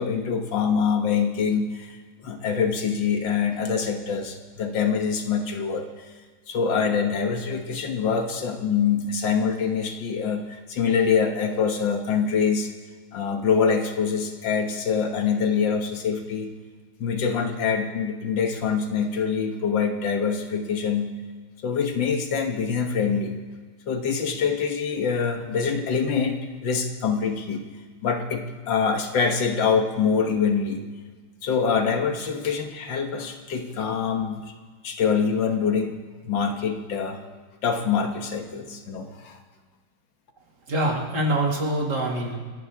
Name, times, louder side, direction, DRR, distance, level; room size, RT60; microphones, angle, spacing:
voice 1, 0.0-5.9 6.5-12.7 13.1-16.5 17.0-21.1 21.6-23.4 23.9-27.6 28.0-30.8 31.4-34.5 34.8-36.0 36.2-37.2 37.6-39.4, left 6 dB, 80° left, 5 dB, 2.0 m, -25 dB
voice 2, 40.7-42.4, right 1 dB, 60° right, -1 dB, 3.1 m, -24 dB
27.5 x 11.0 x 3.7 m, 1.5 s
omnidirectional pair, 2.0 m